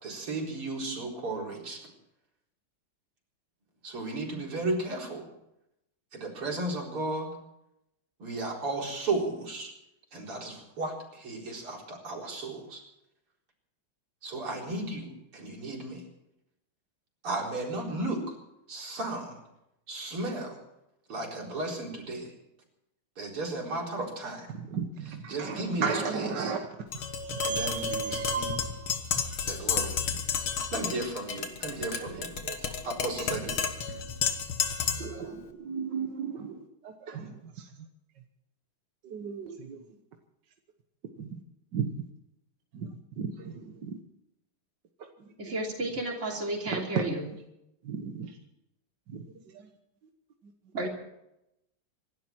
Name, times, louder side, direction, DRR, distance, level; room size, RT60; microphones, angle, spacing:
voice 1, 0.0-1.8 3.8-5.3 6.1-7.3 8.2-9.7 10.1-12.8 14.2-16.0 17.2-18.4 18.7-19.4 19.9-20.6 21.1-22.3 23.2-24.5 25.3-25.8 26.1-26.5 27.4-28.5 29.4-29.9 30.7-32.3 32.8-33.5, right 2 dB, 85° right, -2 dB, 5.2 m, -34 dB
voice 2, 24.5-26.6 26.9-29.4 30.4-30.6 32.0-33.5 33.9-34.0 34.9-37.9 39.0-39.9 41.2-41.4 41.7-42.1 42.7-44.0 45.0-45.3 46.7-47.1 47.8-48.4 49.1-49.7 50.4-50.7, right 6 dB, 55° right, 4 dB, 1.8 m, -36 dB
Tap, 26.9-35.2, left 6 dB, 75° left, 2.3 m, -31 dB
voice 3, 45.4-47.2 50.7-50.9, right 2 dB, 35° right, -1 dB, 3.4 m, -32 dB
26.0 x 12.0 x 4.5 m, 0.85 s
omnidirectional pair, 2.4 m